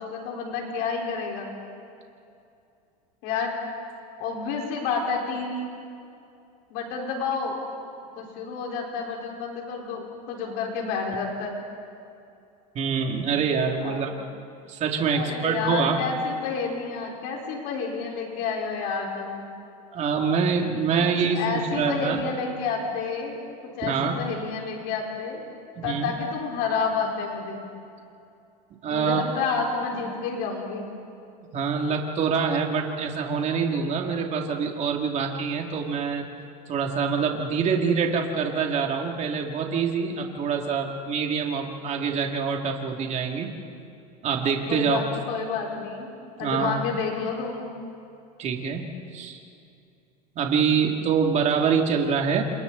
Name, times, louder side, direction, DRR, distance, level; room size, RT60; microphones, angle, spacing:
voice 1, 0.0-1.5 3.2-3.5 4.2-5.7 6.7-7.6 8.2-11.6 13.8-14.1 15.1-19.5 21.2-25.4 25.8-27.7 28.9-30.8 44.7-46.1 46.4-47.7, left 5 dB, 65° left, -1 dB, 4.5 m, -30 dB
voice 2, 12.7-14.1 14.7-16.0 19.9-22.2 23.8-24.2 25.8-26.2 28.8-29.2 31.5-36.2 36.7-43.6 44.2-45.0 46.4-46.8 48.4-49.4 50.3-52.4, right 6 dB, 35° right, 2 dB, 2.7 m, -25 dB
29.5 x 27.0 x 4.1 m, 2.6 s
supercardioid pair, 130°, 20 cm